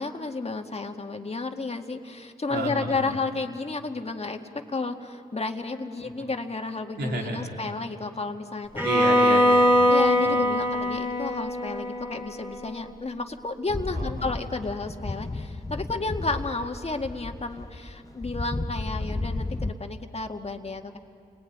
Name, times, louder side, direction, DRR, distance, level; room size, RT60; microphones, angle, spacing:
voice 1, 0.0-8.9 9.9-21.0, left 3 dB, 40° left, 5 dB, 2.0 m, -32 dB
voice 2, 2.5-3.1 6.0-6.3 7.0-7.5 8.8-9.9 10.2-10.6 13.9-14.3, right 2 dB, 85° right, 1 dB, 3.0 m, -32 dB
Bowed string instrument, 8.8-12.8, left 1 dB, 10° right, 3.4 m, -22 dB
sound 1, 13.7-19.7, left 2 dB, 20° left, 0.9 m, -33 dB
29.5 x 19.5 x 9.4 m, 2.5 s
supercardioid pair, 45°, 17 cm